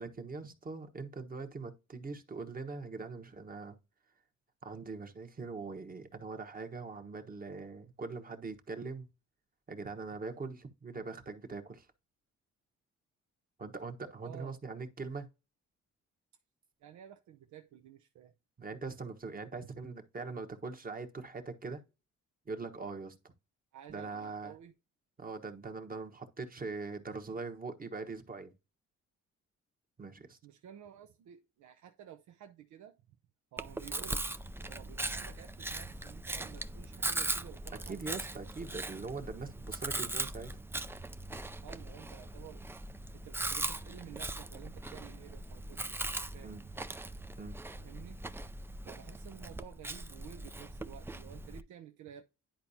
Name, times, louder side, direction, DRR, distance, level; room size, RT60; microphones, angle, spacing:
voice 1, 0.0-3.8 4.6-9.1 9.7-11.9 13.6-15.3 18.6-21.8 22.5-23.2 23.9-24.6 25.2-28.5 30.0-30.4 37.7-40.6 46.4-46.7 47.4-47.6, right 4 dB, 30° right, 1.2 m, -42 dB
voice 2, 14.2-14.6 16.8-18.3 19.6-19.7 23.7-24.7 30.4-33.0 33.5-38.0 41.6-42.6 43.1-46.7 47.7-48.2 48.8-52.2, right 10 dB, 75° right, 0.7 m, -52 dB
Chewing mastication, 33.6-51.6, right 2 dB, 10° right, 0.4 m, -40 dB
10.5 x 4.5 x 2.7 m
cardioid pair, 90°, 30 cm